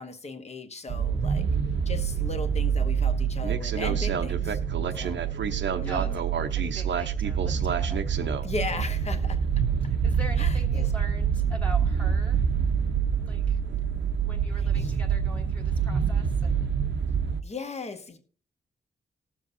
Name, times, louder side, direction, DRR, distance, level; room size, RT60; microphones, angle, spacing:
voice 1, 0.0-1.5 1.8-4.6 4.9-5.2 5.8-6.2 8.4-9.4 10.4-10.9 14.7-14.9 17.4-18.2, left 3 dB, 35° left, 7 dB, 1.2 m, -37 dB
sound 1, 0.9-17.4, right 7 dB, 75° right, 0.8 m, -26 dB
voice 2, 4.9-5.2 5.8-6.2 6.5-8.1 9.8-12.4 13.2-13.6 14.3-16.7, right 1 dB, 5° left, 0 dB, 1.3 m, -43 dB
19.5 x 7.5 x 2.7 m, 0.42 s
wide cardioid pair, 175°, 19 cm